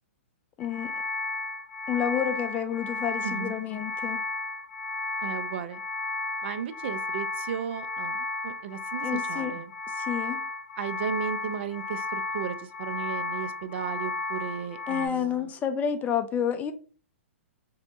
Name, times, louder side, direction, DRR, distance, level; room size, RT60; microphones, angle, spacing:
sound 1, 0.6-15.1, left 3 dB, 55° left, 0.7 m, -33 dB
voice 1, 0.6-0.9 1.9-4.2 9.0-9.5 10.0-10.4 14.9-16.7, left 8 dB, 20° left, 0.5 m, -29 dB
voice 2, 3.2-3.6 5.2-5.8 6.4-9.7 10.8-15.5, right 8 dB, 55° right, 0.4 m, -35 dB
4.4 x 2.7 x 2.5 m
hypercardioid pair, 120°, 7 cm